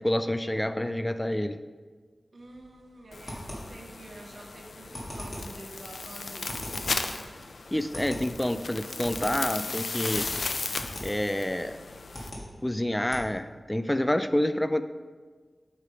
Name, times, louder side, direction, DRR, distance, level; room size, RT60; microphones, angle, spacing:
voice 1, 0.0-1.6 7.7-10.3 11.0-11.8 12.6-14.8, left 1 dB, 10° left, 11 dB, 0.3 m, -28 dB
voice 2, 2.3-6.8, right 2 dB, 75° right, 0 dB, 1.1 m, -48 dB
sound 1, 2.4-13.2, equal, 45° left, 1.9 m, -43 dB
sound 2, 3.1-12.3, left 3 dB, 85° left, 0.4 m, -36 dB
8.6 x 3.4 x 5.6 m, 1.5 s
wide cardioid pair, 95°, 0 cm